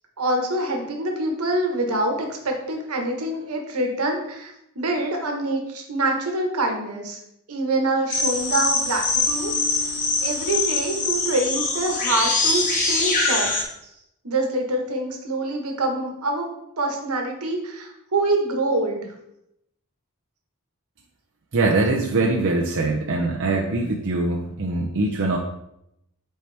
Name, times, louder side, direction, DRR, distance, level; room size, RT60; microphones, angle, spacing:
voice 1, 0.2-7.2 7.5-9.5 10.2-13.5 14.2-16.4 16.8-19.1, right 2 dB, 80° right, 2 dB, 1.4 m, -25 dB
sound 1, 8.1-13.6, left 3 dB, 40° left, 1.4 m, -23 dB
Marimba xylophone, 9.3-11.3, left 3 dB, 85° left, 2.2 m, -39 dB
voice 2, 21.5-25.4, right 2 dB, 60° right, -1 dB, 0.7 m, -22 dB
8.1 x 4.6 x 3.4 m, 0.80 s
head